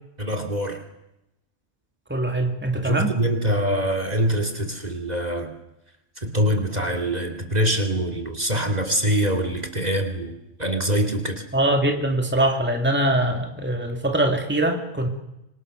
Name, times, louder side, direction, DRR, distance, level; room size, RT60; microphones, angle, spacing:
voice 1, 0.2-0.8 2.7-5.5 6.2-10.3 10.6-11.4, equal, 30° right, 7 dB, 2.8 m, -24 dB
voice 2, 2.1-3.1 11.5-15.1, right 1 dB, 10° right, 3 dB, 2.6 m, -22 dB
27.0 x 25.5 x 6.6 m, 0.89 s
omnidirectional pair, 1.3 m